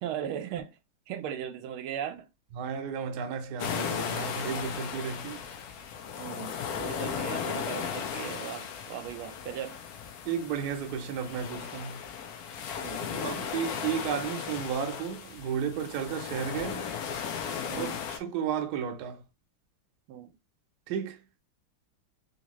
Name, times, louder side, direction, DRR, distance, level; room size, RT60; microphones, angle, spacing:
voice 1, 0.0-0.8 1.1-2.3 6.2-9.8 12.8-13.4 17.7-17.9 20.1-20.4, right 9 dB, 85° right, 1.4 m, -38 dB
voice 2, 2.5-5.4 10.2-12.0 13.2-16.9 17.8-19.2 20.9-21.4, right 7 dB, 65° right, 1.1 m, -33 dB
sound 1, 3.6-18.2, left 7 dB, 80° left, 0.8 m, -36 dB
3.5 x 2.8 x 2.9 m
omnidirectional pair, 2.3 m